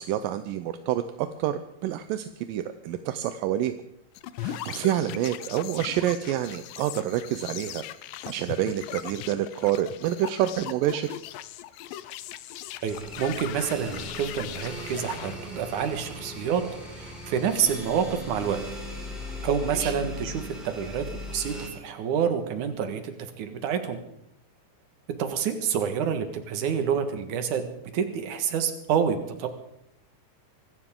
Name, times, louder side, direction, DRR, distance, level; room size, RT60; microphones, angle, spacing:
voice 1, 0.0-3.7 4.4-7.8 8.3-11.1 19.7-19.9, right 11 dB, 75° right, 10 dB, 2.1 m, -28 dB
sound 1, 4.2-15.4, left 13 dB, 80° left, 2.0 m, -39 dB
voice 2, 12.8-16.6 16.9-18.6 19.4-24.0 25.2-29.5, right 7 dB, 60° right, 7 dB, 2.7 m, -28 dB
sound 2, 12.9-21.7, left 1 dB, ahead, 5.1 m, -39 dB
25.0 x 14.5 x 3.7 m, 0.81 s
omnidirectional pair, 4.5 m